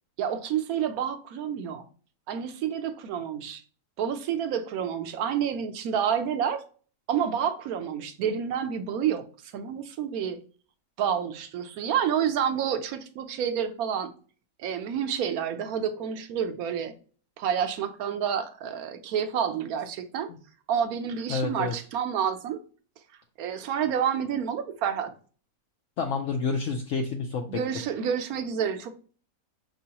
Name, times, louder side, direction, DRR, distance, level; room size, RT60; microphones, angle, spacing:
voice 1, 0.2-1.8 2.3-3.6 4.0-6.6 7.1-9.2 9.5-10.4 11.0-14.1 14.6-16.9 17.4-20.3 20.7-22.6 23.4-25.1 27.5-28.9, right 8 dB, 75° right, 1.1 m, -29 dB
voice 2, 21.3-21.7 26.0-27.6, left 4 dB, 65° left, 0.9 m, -29 dB
5.7 x 3.0 x 2.8 m
omnidirectional pair, 1.6 m